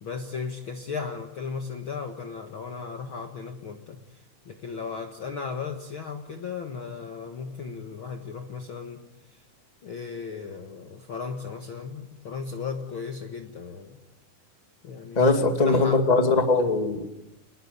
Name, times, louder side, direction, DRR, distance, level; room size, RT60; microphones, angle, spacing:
voice 1, 0.0-4.0 4.5-9.0 9.8-14.0 14.8-16.0, left 5 dB, 45° left, 4 dB, 2.0 m, -36 dB
voice 2, 15.2-17.0, left 3 dB, 15° left, 5 dB, 2.1 m, -21 dB
29.0 x 20.5 x 8.2 m, 0.96 s
omnidirectional pair, 3.7 m